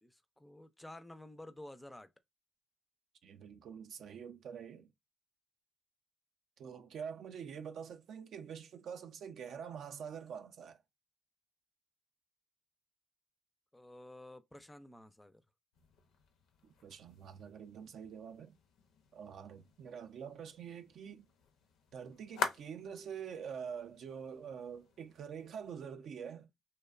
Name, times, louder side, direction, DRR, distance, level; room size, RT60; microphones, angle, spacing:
voice 1, 0.0-2.1 13.7-15.4, left 1 dB, 10° left, 0.3 m, -52 dB
voice 2, 3.2-4.9 6.6-10.8 16.6-18.6 19.1-21.3 21.9-26.5, right 7 dB, 70° right, 0.3 m, -46 dB
sound 1, 15.7-25.7, left 6 dB, 90° left, 0.5 m, -47 dB
2.7 x 2.1 x 2.3 m
cardioid pair, 90°, 0 cm